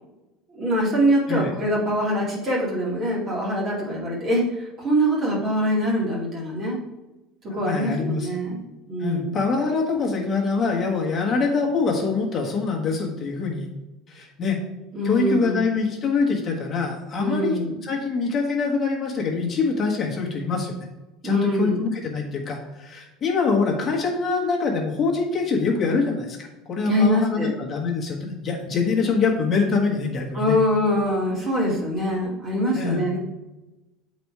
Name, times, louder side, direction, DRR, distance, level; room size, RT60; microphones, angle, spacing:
voice 1, 0.5-6.8 7.5-8.6 8.9-9.4 14.9-15.6 17.2-17.8 21.2-21.8 26.8-27.5 30.3-33.2, equal, 25° right, -4 dB, 2.2 m, -23 dB
voice 2, 7.5-8.3 9.0-13.7 14.1-14.6 15.0-20.9 21.2-26.4 26.7-30.6 32.7-33.1, left 4 dB, 25° left, -1 dB, 1.3 m, -24 dB
7.9 x 4.2 x 4.7 m, 1.0 s
cardioid pair, 175°, 0 cm